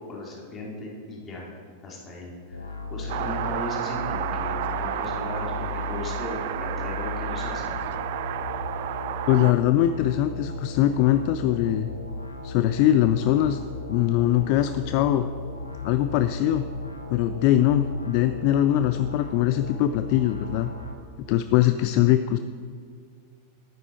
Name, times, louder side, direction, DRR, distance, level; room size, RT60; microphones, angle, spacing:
voice 1, 0.1-1.5 1.8-7.8, left 2 dB, 25° left, -3 dB, 2.8 m, -37 dB
sound 1, 2.5-21.0, left 2 dB, 80° left, 0.9 m, -36 dB
sound 2, 3.1-9.5, right 11 dB, 50° right, 0.4 m, -31 dB
voice 2, 9.3-11.9 12.4-13.6 13.9-15.3 15.8-16.7 17.1-20.7 21.3-22.4, left 12 dB, 45° left, 10 dB, 0.3 m, -22 dB
10.5 x 9.2 x 4.5 m, 2.1 s
figure-of-eight pair, 90°, 0 cm